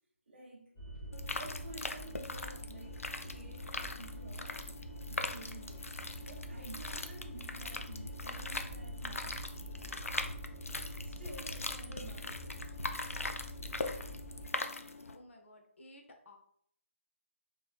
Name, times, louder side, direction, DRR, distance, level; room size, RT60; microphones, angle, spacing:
voice 1, 0.3-0.7 1.4-4.7 5.1-5.8 6.3-10.2 11.0-12.7, right 2 dB, 55° right, -2 dB, 0.6 m, -51 dB
sound 1, 0.8-14.5, equal, 25° left, 0.8 m, -45 dB
sound 2, 1.1-15.2, left 3 dB, 85° left, 0.4 m, -41 dB
voice 2, 15.1-16.4, left 1 dB, 60° left, 2 dB, 0.7 m, -56 dB
3.1 x 3.0 x 2.3 m, 0.66 s
figure-of-eight pair, 150°, 7 cm